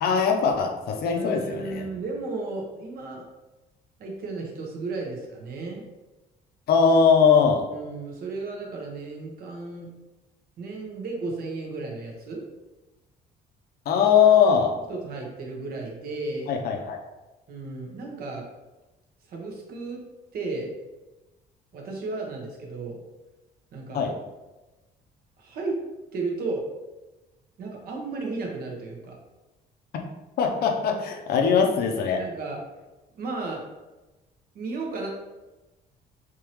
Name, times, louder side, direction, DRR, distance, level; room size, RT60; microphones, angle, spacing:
voice 1, 0.0-1.9 6.7-7.7 13.9-14.7 16.5-17.0 23.9-24.1 30.4-32.2, left 6 dB, 65° left, 3 dB, 0.7 m, -20 dB
voice 2, 1.1-3.2 4.0-5.8 7.7-9.9 10.6-12.4 14.9-16.6 17.5-18.4 19.3-20.0 20.3-20.7 21.7-23.0 23.7-24.0 25.4-25.8 26.1-26.6 27.6-29.2 32.2-32.6 33.2-33.6 34.5-35.1, right 3 dB, 60° right, 0 dB, 1.0 m, -34 dB
3.6 x 2.9 x 3.0 m, 1.1 s
cardioid pair, 110°, 17 cm